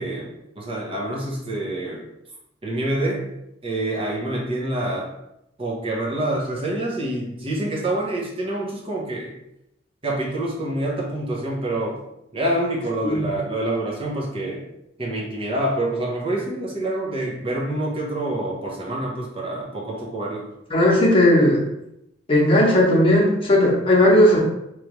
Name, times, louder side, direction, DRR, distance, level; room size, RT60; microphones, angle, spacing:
voice 1, 0.0-2.1 2.6-3.3 3.6-5.1 5.6-9.3 10.0-12.0 12.3-14.7 15.0-20.5, right 1 dB, 30° right, -4 dB, 0.9 m, -26 dB
voice 2, 20.7-21.7 22.3-24.4, left 1 dB, 30° left, -4 dB, 1.1 m, -16 dB
3.2 x 3.2 x 3.0 m, 0.84 s
head